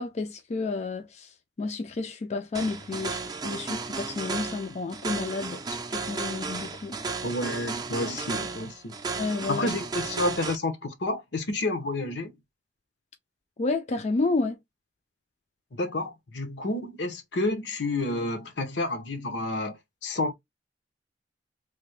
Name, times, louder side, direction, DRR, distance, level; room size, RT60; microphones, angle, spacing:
voice 1, 0.0-7.0 8.4-8.5 9.2-9.7 13.6-14.6, left 3 dB, 40° left, 0.4 m, -31 dB
sound 1, 2.5-10.6, right 4 dB, 25° right, 0.4 m, -34 dB
voice 2, 7.2-8.9 9.5-12.3 15.7-20.3, left 2 dB, 80° left, 0.9 m, -30 dB
3.3 x 2.2 x 3.1 m
head